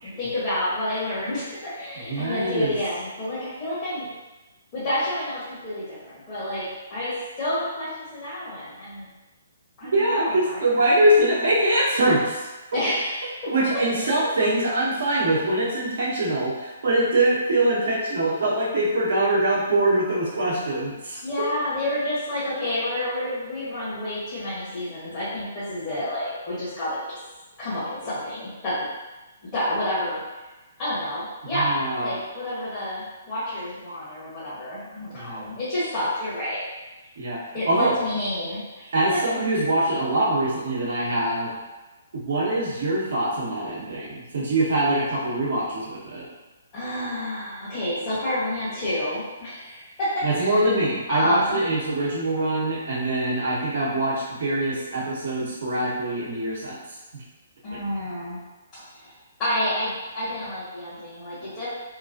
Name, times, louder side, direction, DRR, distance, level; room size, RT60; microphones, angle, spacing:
voice 1, 0.0-4.1 4.7-9.1 9.8-10.6 12.7-13.5 13.9-14.2 21.2-27.2 27.6-28.8 29.5-30.2 30.8-36.6 37.5-39.2 46.7-50.6 51.1-51.6 57.6-58.4 58.7-59.1 59.4-61.7, left 1 dB, 30° left, -12 dB, 1.3 m, -29 dB
voice 2, 2.1-2.7 9.9-12.4 13.5-21.2 31.5-32.1 35.1-35.5 37.2-37.4 37.7-37.9 38.9-41.5 42.1-46.3 50.2-56.8, right 1 dB, 60° right, -5 dB, 1.0 m, -23 dB
3.0 x 2.3 x 2.6 m, 1.1 s
figure-of-eight pair, 130°, 0 cm